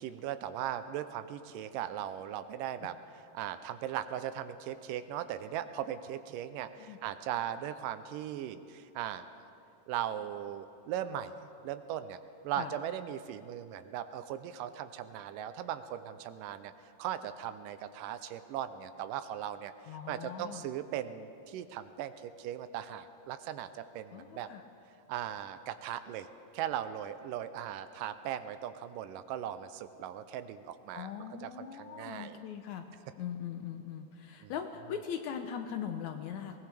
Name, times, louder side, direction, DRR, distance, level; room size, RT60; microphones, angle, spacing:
voice 1, 0.0-9.3 9.9-12.2 12.4-16.7 17.0-24.5 25.1-26.3 26.5-32.4 34.4-34.5, right 10 dB, 85° right, 11 dB, 2.2 m, -38 dB
voice 2, 19.9-20.6 24.1-24.6 30.9-32.9 33.2-36.6, left 8 dB, 75° left, 6 dB, 1.8 m, -40 dB
21.5 x 19.0 x 3.4 m, 2.7 s
omnidirectional pair, 3.9 m